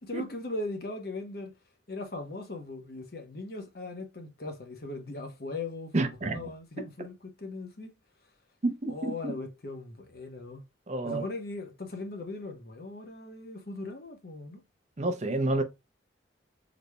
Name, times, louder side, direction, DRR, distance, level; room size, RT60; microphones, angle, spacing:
voice 1, 0.1-1.5 1.9-7.9 8.9-10.6 11.0-14.6, left 2 dB, 55° left, 0.9 m, -39 dB
voice 2, 5.9-6.4 8.6-9.3 10.9-11.2 15.0-15.6, right 2 dB, 40° right, 0.6 m, -29 dB
4.0 x 3.2 x 2.2 m
head